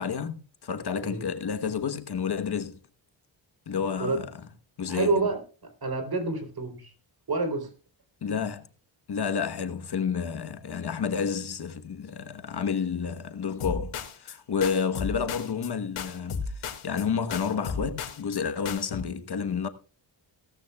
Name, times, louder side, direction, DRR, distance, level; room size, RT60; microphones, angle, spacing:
voice 1, 0.0-2.8 3.7-4.3 4.8-5.1 8.2-8.7 9.1-19.7, left 6 dB, 50° left, 1.2 m, -30 dB
voice 2, 4.9-5.4 5.8-6.9 7.3-7.7, right 3 dB, 45° right, 3.7 m, -28 dB
sound 1, 13.6-14.4 14.6-15.7 16.0-17.0 17.3-18.4 18.6-19.0, left 5 dB, 85° left, 2.2 m, -34 dB
17.5 x 13.5 x 2.3 m
wide cardioid pair, 110°, 49 cm